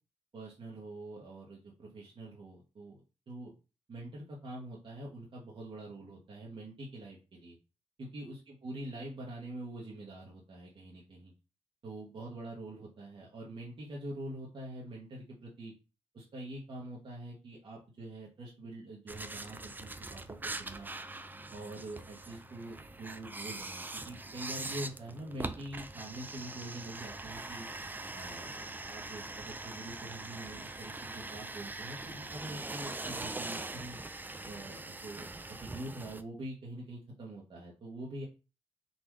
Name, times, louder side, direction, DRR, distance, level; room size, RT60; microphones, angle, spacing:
voice 1, 0.3-3.0 3.3-3.5 3.9-7.6 8.0-11.3 11.8-15.7 16.1-20.9 21.5-27.7 28.1-34.0 34.4-38.3, right 1 dB, 55° right, -4 dB, 1.2 m, -45 dB
sound 1, 19.1-36.2, right 2 dB, 20° right, 0.5 m, -42 dB
4.1 x 2.6 x 4.6 m, 0.31 s
cardioid pair, 90°, 10 cm